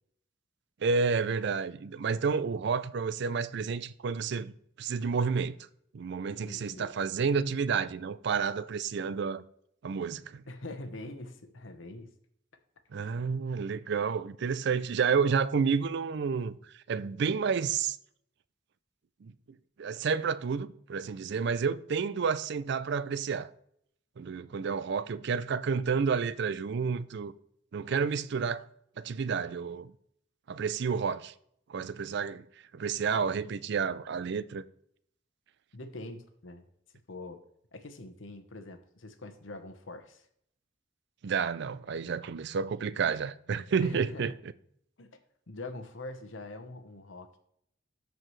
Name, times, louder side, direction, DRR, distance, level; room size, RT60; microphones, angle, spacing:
voice 1, 0.8-5.6 5.9-9.4 9.8-10.4 12.9-16.6 16.9-18.0 19.2-19.3 19.8-23.5 24.2-27.3 27.7-28.7 29.0-29.9 30.5-31.3 31.7-32.4 32.7-34.6 41.2-44.3, right 5 dB, 60° right, 0.4 m, -30 dB
voice 2, 6.4-6.9 10.5-12.1 13.0-13.1 35.7-36.6 37.1-37.4 37.7-40.3 43.8-44.3 45.0-45.2 45.5-47.4, left 2 dB, 80° left, 1.0 m, -44 dB
13.5 x 4.7 x 3.2 m
head